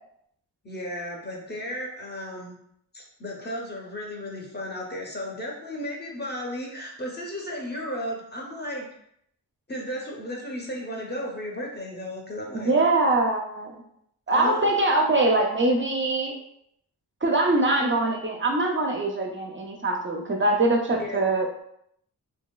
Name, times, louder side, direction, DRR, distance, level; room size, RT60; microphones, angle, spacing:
voice 1, 0.6-2.6 2.9-8.9 9.7-12.7 14.3-14.7 21.0-21.2, equal, 25° left, -1 dB, 0.7 m, -34 dB
voice 2, 12.5-13.8 14.3-16.4 17.2-21.6, right 2 dB, 30° right, 1 dB, 0.4 m, -23 dB
2.9 x 2.7 x 2.2 m, 0.73 s
wide cardioid pair, 95°, 39 cm